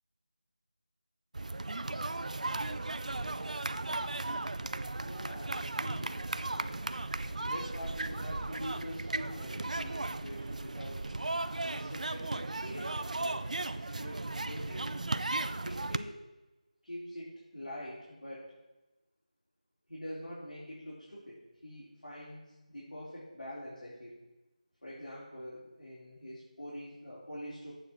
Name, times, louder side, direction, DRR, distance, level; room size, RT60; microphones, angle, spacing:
sound 1, 1.3-16.0, right 2 dB, 65° right, 0.5 m, -36 dB
voice 1, 5.0-6.1 6.4-6.8 7.4-11.1 11.6-15.0 15.6-16.2 16.8-18.5 19.9-24.2 24.8-27.7, equal, 90° left, -8 dB, 3.8 m, -45 dB
8.0 x 4.9 x 7.5 m, 1.0 s
figure-of-eight pair, 170°, 4 cm